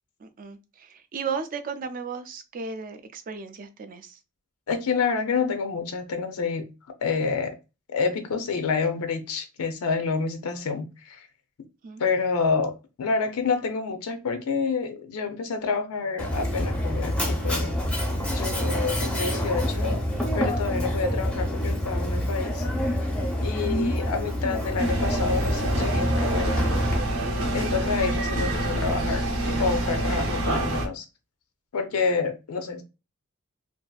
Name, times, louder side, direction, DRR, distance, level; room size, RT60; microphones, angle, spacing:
voice 1, 0.2-4.2 11.8-12.0 23.5-23.9 27.1-27.2, right 5 dB, 40° right, 0.4 m, -35 dB
voice 2, 4.7-6.7 7.0-7.6 7.9-11.3 12.0-17.8 18.3-20.0 20.3-22.7 23.4-26.6 27.5-31.1 31.7-32.8, left 5 dB, 75° left, 0.4 m, -28 dB
Mechanisms, 16.2-27.0, equal, 5° left, 0.6 m, -27 dB
sound 1, 24.8-30.9, right 1 dB, 65° right, 0.7 m, -27 dB
2.6 x 2.4 x 2.2 m
head